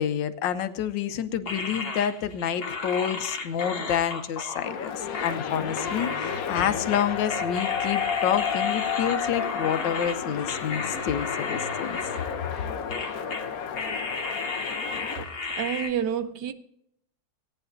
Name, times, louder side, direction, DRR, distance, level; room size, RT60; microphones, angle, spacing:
voice 1, 0.0-12.0, left 9 dB, 90° left, 1.4 m, -28 dB
sound 1, 1.5-10.2 10.5-12.6 12.9-13.5 13.8-15.9, left 4 dB, 35° left, 1.2 m, -34 dB
sound 2, 4.6-15.2, left 7 dB, 60° left, 1.2 m, -31 dB
voice 2, 15.5-16.5, right 9 dB, 75° right, 1.3 m, -28 dB
17.0 x 9.7 x 2.7 m
omnidirectional pair, 1.9 m